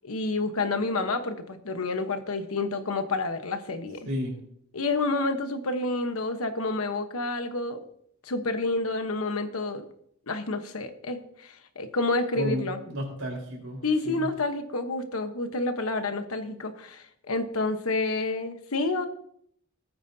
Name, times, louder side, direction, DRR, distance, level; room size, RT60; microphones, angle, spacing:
voice 1, 0.0-4.0 4.7-7.8 8.2-9.8 10.3-12.8 13.8-19.1, left 3 dB, 70° left, 8 dB, 1.2 m, -29 dB
voice 2, 4.1-4.4 12.4-14.3, equal, 65° right, -1 dB, 4.4 m, -32 dB
19.0 x 9.2 x 2.8 m, 0.68 s
head